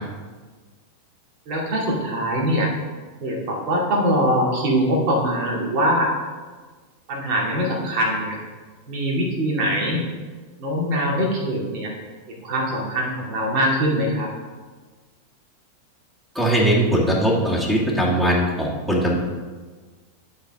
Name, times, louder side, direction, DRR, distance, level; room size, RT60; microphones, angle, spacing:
voice 1, 1.5-2.7 3.2-6.1 7.1-8.4 8.9-10.0 10.6-11.9 12.4-14.3, equal, 40° right, -3 dB, 2.3 m, -22 dB
voice 2, 16.3-19.1, right 1 dB, 10° right, -5 dB, 2.0 m, -20 dB
11.0 x 4.2 x 4.9 m, 1.4 s
figure-of-eight pair, 90°, 0 cm